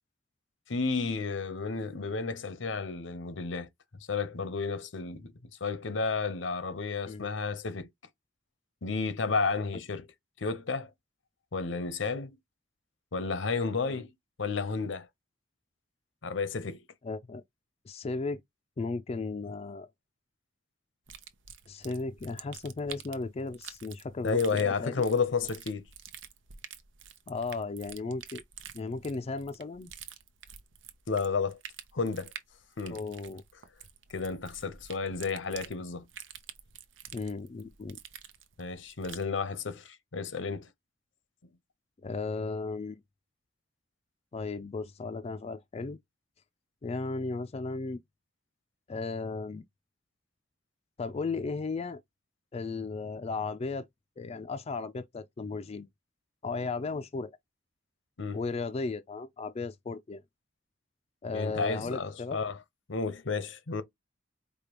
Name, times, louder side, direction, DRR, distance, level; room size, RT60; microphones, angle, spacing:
voice 1, 0.7-3.7 4.1-5.3 5.6-7.9 8.8-10.1 10.4-10.9 11.5-12.4 13.1-14.1 14.4-15.1 16.2-16.8 24.2-25.9 31.1-31.6 31.9-32.3 32.8-33.0 34.1-36.1 38.6-40.7 58.2-58.4 61.3-62.6 62.9-63.8, left 4 dB, 85° left, 0.8 m, -32 dB
voice 2, 17.0-17.4 17.9-18.4 18.8-19.9 21.7-24.9 27.3-28.4 28.7-29.9 32.9-33.4 37.1-38.0 42.0-43.0 44.3-46.0 46.8-48.0 48.9-49.6 51.0-52.0 52.5-53.9 54.2-55.9 56.4-57.3 58.3-60.2 61.2-62.4, left 3 dB, 35° left, 0.4 m, -35 dB
sound 1, 21.1-39.3, right 9 dB, 85° right, 0.7 m, -48 dB
5.0 x 2.2 x 2.9 m
head